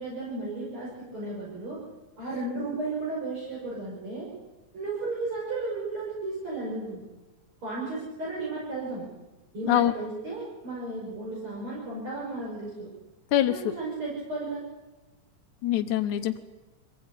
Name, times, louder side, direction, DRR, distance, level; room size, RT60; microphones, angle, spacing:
voice 1, 0.0-1.8 2.2-4.3 4.7-7.1 7.6-9.1 9.5-12.9 13.5-14.6, right 2 dB, 45° right, -5 dB, 6.6 m, -34 dB
voice 2, 13.3-13.7 15.6-16.4, left 12 dB, 90° left, 6 dB, 2.4 m, -24 dB
24.0 x 16.5 x 9.9 m, 1.1 s
omnidirectional pair, 3.4 m